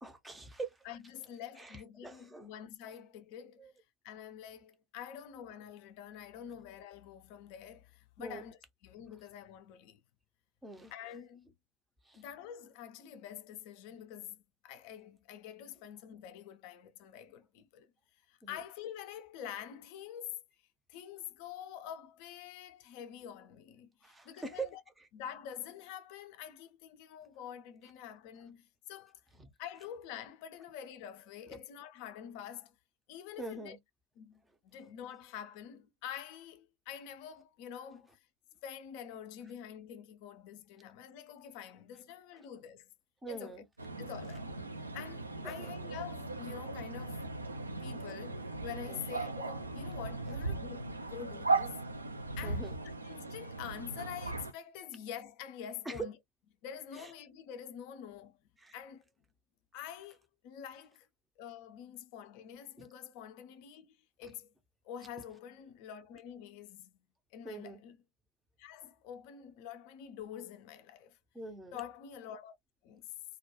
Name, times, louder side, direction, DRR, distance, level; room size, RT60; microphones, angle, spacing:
voice 1, 0.0-0.8 1.6-2.5 3.6-3.7 8.2-8.4 10.6-10.9 12.0-12.2 18.4-18.6 24.0-24.7 25.0-25.1 29.4-29.5 33.4-33.8 43.2-43.6 45.4-45.7 48.9-49.0 52.4-52.7 55.9-56.0 56.9-57.1 58.6-58.7 62.8-62.9 67.4-67.8 71.3-71.8, right 3 dB, 10° right, 0.5 m, -43 dB
voice 2, 0.9-3.7 4.0-10.0 10.9-11.5 12.2-17.9 18.3-20.4 20.9-24.8 25.1-29.2 29.6-32.7 33.1-33.8 34.2-38.2 38.6-42.9 43.3-43.6 44.0-44.4 44.8-47.2 47.8-51.8 52.4-52.7 53.0-56.2 56.6-58.4 58.7-59.0 59.7-61.1 61.4-64.5 64.8-66.9 67.3-68.0 68.6-71.2 71.7-72.6 72.8-73.1, left 9 dB, 45° left, 0.4 m, -47 dB
sound 1, 43.8-54.5, right 3 dB, 80° right, 0.4 m, -38 dB
2.2 x 2.2 x 2.7 m
figure-of-eight pair, 90°, 0 cm